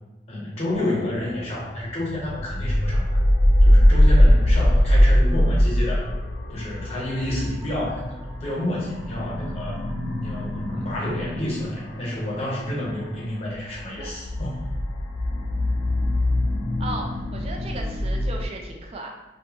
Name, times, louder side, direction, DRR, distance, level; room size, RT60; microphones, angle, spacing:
voice 1, 0.3-3.2 3.6-6.1 6.5-9.8 10.2-14.7, left 1 dB, 35° left, -5 dB, 0.7 m, -30 dB
sound 1, 0.7-18.5, equal, 85° left, 0.5 m, -22 dB
voice 2, 16.8-19.1, right 1 dB, 30° right, 1 dB, 0.3 m, -35 dB
2.6 x 2.2 x 2.7 m, 1.0 s
head